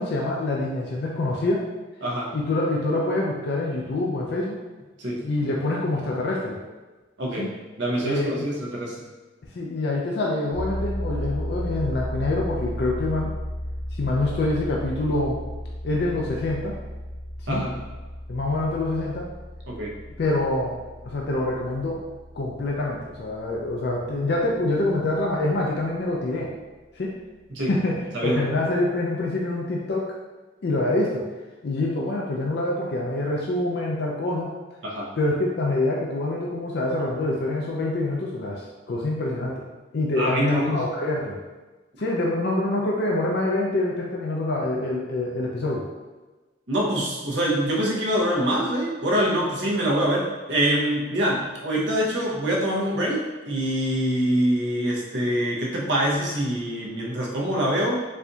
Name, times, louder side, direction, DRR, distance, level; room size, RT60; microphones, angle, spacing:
voice 1, 0.0-1.7 2.3-4.6 5.2-6.6 7.4-7.5 8.0-8.5 9.5-13.3 13.9-15.4 15.8-16.7 17.4-17.6 18.3-19.3 20.2-20.8 21.0-22.0 22.3-26.5 26.9-27.1 27.7-30.1 30.6-31.2 31.6-34.5 35.2-39.6 39.9-41.4 42.0-45.8, left 2 dB, 60° left, -3 dB, 0.4 m, -25 dB
voice 2, 2.0-2.3 5.0-5.2 7.2-7.5 7.8-9.0 17.5-17.8 19.7-20.0 27.5-27.8 28.1-28.4 34.8-35.1 40.2-40.9 46.7-58.0, right 1 dB, 75° right, -4 dB, 0.8 m, -25 dB
sound 1, 10.5-25.3, equal, 10° left, 0.7 m, -34 dB
4.2 x 2.6 x 2.3 m, 1.2 s
head